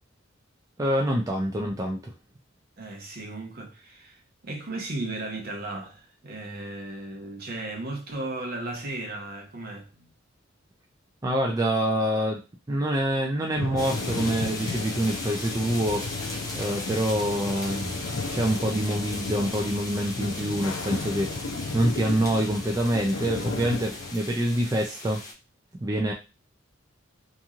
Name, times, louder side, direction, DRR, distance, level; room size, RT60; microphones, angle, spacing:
voice 1, 0.8-2.1 11.2-12.4 12.7-16.1 16.5-17.9 18.3-21.3 21.7-25.2 25.8-26.1, right 1 dB, 15° right, 0.3 m, -26 dB
voice 2, 2.8-10.1, right 2 dB, 50° right, 0.7 m, -36 dB
sound 1, 13.5-24.1, left 3 dB, 75° left, 0.4 m, -34 dB
sound 2, 13.8-25.3, left 2 dB, 20° left, 0.7 m, -38 dB
2.9 x 2.6 x 2.4 m
head